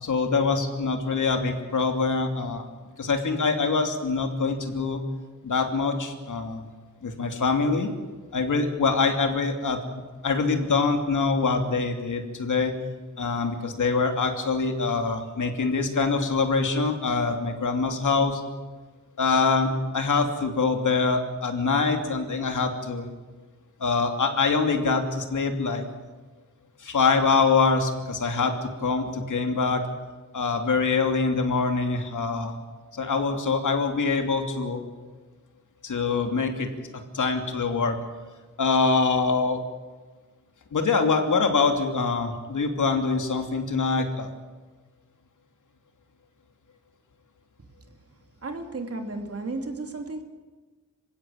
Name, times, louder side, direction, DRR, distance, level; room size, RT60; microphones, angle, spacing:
voice 1, 0.0-2.6 3.0-5.0 5.4-6.6 7.0-7.9 8.3-12.7 13.2-18.4 19.2-23.1 23.8-25.8 26.8-29.8 30.3-32.5 32.9-34.8 35.8-36.7 36.9-38.0 38.6-39.6 40.7-44.3, left 4 dB, 80° left, 5 dB, 2.9 m, -24 dB
voice 2, 48.4-50.2, right 2 dB, 50° right, 5 dB, 2.9 m, -33 dB
26.5 x 16.0 x 8.8 m, 1.3 s
wide cardioid pair, 105°, 30 cm